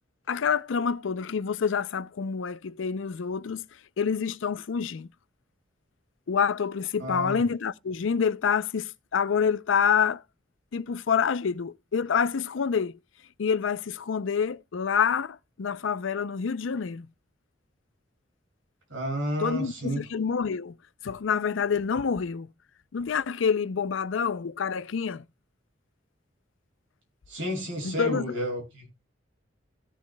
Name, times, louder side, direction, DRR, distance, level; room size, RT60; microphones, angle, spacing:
voice 1, 0.3-3.6 4.0-5.1 6.3-10.2 10.7-12.9 13.4-17.1 19.4-20.8 21.0-22.5 22.9-25.2 27.8-28.3, left 6 dB, 90° left, 0.5 m, -27 dB
voice 2, 7.0-7.4 18.9-20.0 27.3-28.9, equal, 85° right, 6.4 m, -31 dB
16.5 x 7.2 x 2.2 m
head